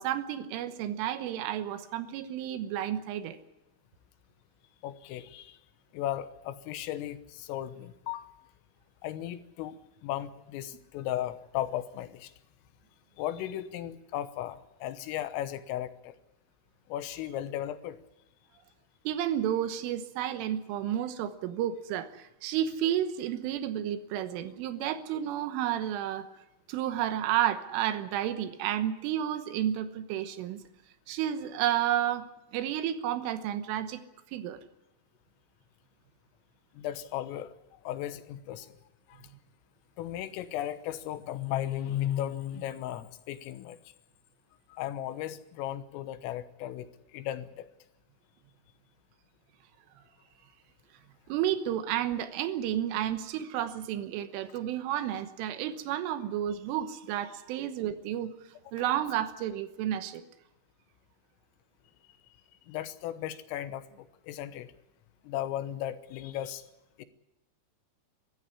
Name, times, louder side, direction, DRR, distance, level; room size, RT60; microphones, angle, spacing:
voice 1, 0.0-3.4 19.1-26.3 26.7-30.6 31.1-32.3 32.5-34.0 34.3-34.6 51.3-58.3 58.7-60.2, right 11 dB, 80° right, 10 dB, 3.6 m, -31 dB
voice 2, 4.8-5.6 5.9-8.3 9.0-12.3 13.2-16.2 16.9-18.0 36.8-38.7 39.1-39.3 40.0-43.8 44.7-47.7 62.7-64.7 65.2-66.7 67.0-67.1, left 12 dB, 85° left, 11 dB, 3.7 m, -36 dB
23.0 x 13.5 x 9.8 m, 0.92 s
omnidirectional pair, 5.8 m